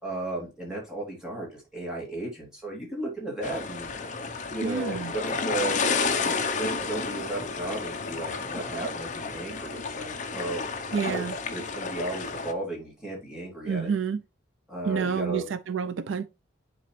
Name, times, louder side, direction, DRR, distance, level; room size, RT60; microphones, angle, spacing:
voice 1, 0.0-3.9 4.5-5.8 6.6-10.6 11.0-11.2 11.5-13.9 14.7-15.5, right 1 dB, 5° right, 2.6 m, -34 dB
sound 1, 3.4-12.5, left 4 dB, 35° left, 0.7 m, -31 dB
voice 2, 4.6-5.1 10.9-11.3 13.6-14.2 14.8-16.3, right 6 dB, 70° right, 0.4 m, -29 dB
9.4 x 4.1 x 3.1 m
head